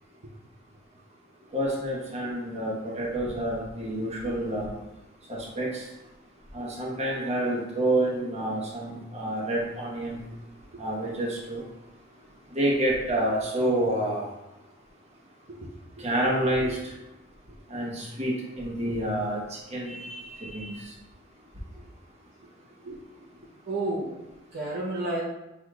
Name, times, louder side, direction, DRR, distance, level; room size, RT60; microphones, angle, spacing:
voice 1, 1.5-4.7 5.3-5.9 6.5-10.2 10.8-11.6 12.5-14.3 16.0-16.9 17.7-20.9, right 1 dB, 35° right, -3 dB, 1.1 m, -28 dB
voice 2, 15.5-16.1 16.6-16.7 21.8-21.9 22.8-23.0 23.6-24.2 24.5-25.2, right 2 dB, 55° right, -6 dB, 0.8 m, -32 dB
6.1 x 3.5 x 2.4 m, 0.99 s
head